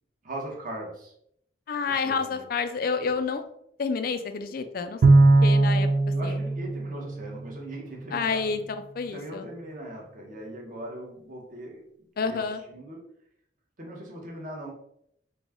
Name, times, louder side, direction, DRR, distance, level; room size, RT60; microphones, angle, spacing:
voice 1, 0.2-1.1 2.0-2.5 6.1-8.5 9.1-11.8 12.2-12.4 12.7-13.0 13.8-14.7, right 1 dB, 50° right, -1 dB, 1.0 m, -39 dB
voice 2, 1.7-3.4 3.8-5.0 5.4-5.9 6.2-6.4 8.1-8.6 9.0-9.4 12.2-12.6, left 5 dB, 55° left, 9 dB, 0.4 m, -29 dB
Bowed string instrument, 5.0-7.6, right 2 dB, 80° right, 0.4 m, -20 dB
4.0 x 2.3 x 3.5 m, 0.71 s
head